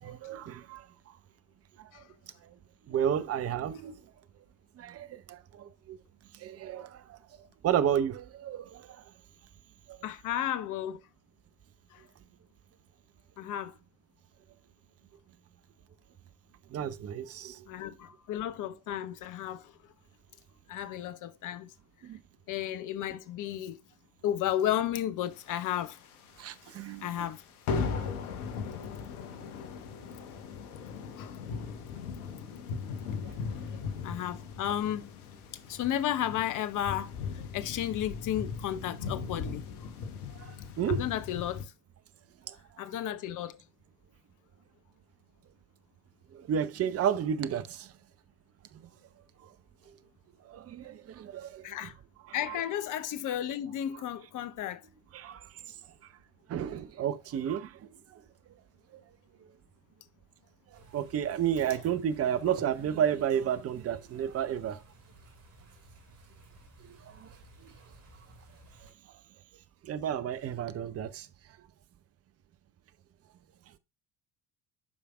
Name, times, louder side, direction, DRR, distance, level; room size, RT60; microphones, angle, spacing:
voice 1, 0.0-0.9 1.8-2.0 2.4-2.5 2.9-4.0 4.8-6.0 6.3-7.2 7.6-9.0 9.9-10.0 16.7-17.7 22.0-22.2 26.4-27.3 33.2-33.3 33.6-33.7 40.3-41.0 42.5-42.6 46.3-47.9 48.7-48.8 50.4-51.7 52.3-52.6 55.1-55.5 56.5-58.2 58.9-59.0 60.7-64.8 66.8-67.3 67.6-67.7 69.8-71.3, right 9 dB, 30° right, 0.8 m, -32 dB
voice 2, 10.0-11.0 11.9-12.0 13.4-13.7 17.7-19.8 20.7-21.7 22.5-23.8 24.2-26.0 27.0-27.4 31.2-31.4 34.0-35.1 35.7-39.7 40.9-41.7 42.8-43.6 51.6-51.9 52.3-54.8, left 11 dB, 40° left, 1.0 m, -33 dB
sound 1, 25.5-26.4 26.7-26.9 27.2-27.4 27.7-41.6, left 5 dB, 70° left, 1.3 m, -38 dB
sound 2, 60.7-68.9, right 3 dB, 50° right, 5.4 m, -55 dB
12.0 x 5.0 x 2.4 m
figure-of-eight pair, 65°, 46 cm